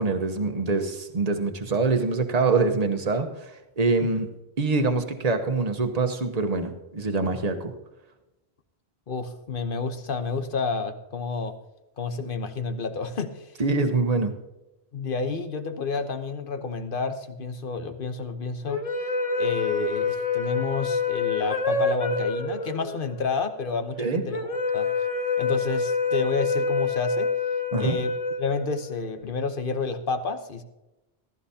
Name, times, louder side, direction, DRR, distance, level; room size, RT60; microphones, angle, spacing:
voice 1, 0.0-4.3 4.6-7.7 13.6-14.3 24.0-24.2 27.7-28.0, right 3 dB, 40° right, 6 dB, 1.1 m, -25 dB
voice 2, 9.1-11.5 12.0-13.5 14.9-18.9 19.4-24.9 25.4-27.3 27.8-28.1 28.4-30.6, left 4 dB, 55° left, 9 dB, 1.1 m, -30 dB
sound 1, 18.7-29.1, left 4 dB, 35° left, 1.0 m, -27 dB
15.0 x 13.5 x 2.8 m, 0.98 s
omnidirectional pair, 1.1 m